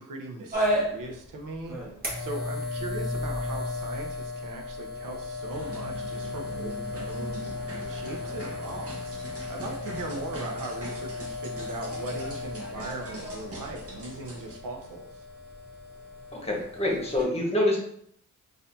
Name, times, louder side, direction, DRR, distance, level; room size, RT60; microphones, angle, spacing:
voice 1, 0.0-1.8 2.2-15.2, right 2 dB, 85° right, 1 dB, 0.7 m, -39 dB
sound 1, 0.5-17.2, left 2 dB, 30° right, 1.3 m, -34 dB
sound 2, 5.5-14.5, right 1 dB, 45° right, 1.2 m, -42 dB
voice 2, 16.4-17.8, left 1 dB, 20° left, -2 dB, 1.3 m, -26 dB
4.2 x 2.6 x 2.6 m, 0.67 s
cardioid pair, 80°, 32 cm